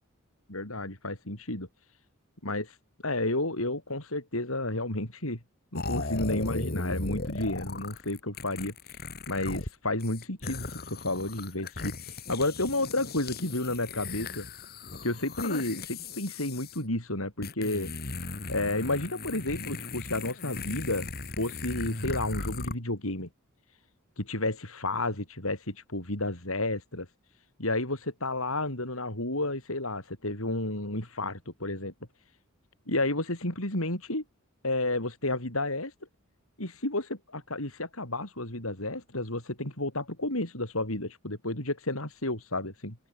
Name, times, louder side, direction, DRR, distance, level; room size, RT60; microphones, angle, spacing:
voice 1, 0.5-2.0 2.4-2.8 3.0-5.4 5.7-14.5 15.0-17.9 18.5-21.1 21.4-23.3 23.7-23.8 24.2-31.9 32.9-34.2 34.6-35.9 36.6-43.0, left 2 dB, 80° left, 7.6 m, -31 dB
sound 1, 5.7-9.7 10.0-16.8 17.4-22.7, left 3 dB, 45° left, 3.3 m, -37 dB
open air
head